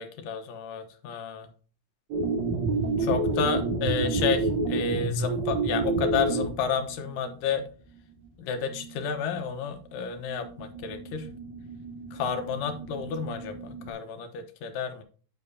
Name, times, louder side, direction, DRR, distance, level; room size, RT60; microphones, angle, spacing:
voice 1, 0.0-1.5 3.0-7.7 8.4-11.3 12.1-15.0, left 6 dB, 70° left, 6 dB, 2.6 m, -31 dB
sound 1, 2.1-7.5 8.0-8.1 8.2-8.3 8.6-9.4 9.6-13.9, right 3 dB, 70° right, 3.7 m, -30 dB
9.5 x 7.2 x 2.8 m, 0.39 s
omnidirectional pair, 4.2 m